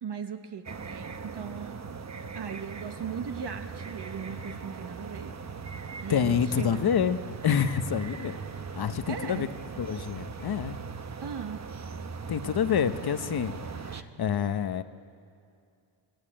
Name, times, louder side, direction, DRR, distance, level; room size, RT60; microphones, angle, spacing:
voice 1, 0.0-1.8 2.3-5.3 6.0-6.8 9.0-9.5 11.2-11.6, right 7 dB, 60° right, 6 dB, 1.3 m, -38 dB
sound 1, 0.6-14.0, right 5 dB, 35° right, 1.0 m, -40 dB
voice 2, 6.1-7.2 7.4-8.4 8.8-9.5 9.8-10.8 12.3-13.5 14.2-14.8, left 8 dB, 55° left, 11 dB, 1.0 m, -27 dB
26.5 x 16.0 x 8.8 m, 2.4 s
wide cardioid pair, 130°, 46 cm